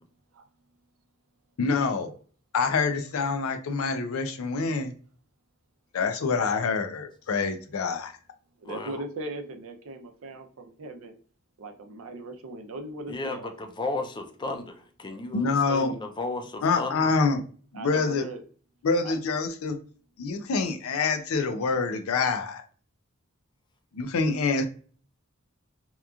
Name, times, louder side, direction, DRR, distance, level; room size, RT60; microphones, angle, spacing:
voice 1, 1.6-2.1 2.5-4.9 5.9-8.1 15.3-16.0 16.6-17.4 17.7-18.3 18.8-19.8 20.2-22.6 23.9-24.7, left 4 dB, 90° left, 0.4 m, -26 dB
voice 2, 8.6-11.1 11.6-13.5 17.7-18.4 19.0-19.2, right 2 dB, 75° right, 0.5 m, -38 dB
voice 3, 13.1-17.0, left 2 dB, 20° left, 0.4 m, -34 dB
2.9 x 2.3 x 2.3 m
head